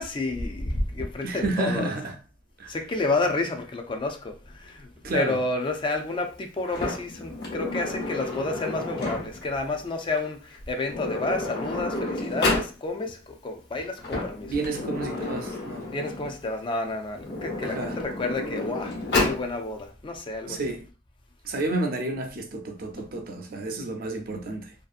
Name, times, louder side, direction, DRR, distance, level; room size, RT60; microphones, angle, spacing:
voice 1, 0.0-1.9 2.7-14.5 15.9-19.0 19.3-20.6 23.0-23.1, left 2 dB, 30° left, 0.4 m, -30 dB
voice 2, 1.2-2.2 2.6-2.8 5.0-5.4 14.5-15.9 17.6-18.0 20.5-20.9 21.4-24.7, right 2 dB, 55° right, 0.5 m, -30 dB
Sliding door, 6.7-9.5 10.5-10.6 10.8-12.7 13.8-16.4 17.1-19.4, left 2 dB, 65° left, 1.1 m, -30 dB
2.7 x 2.4 x 2.4 m
head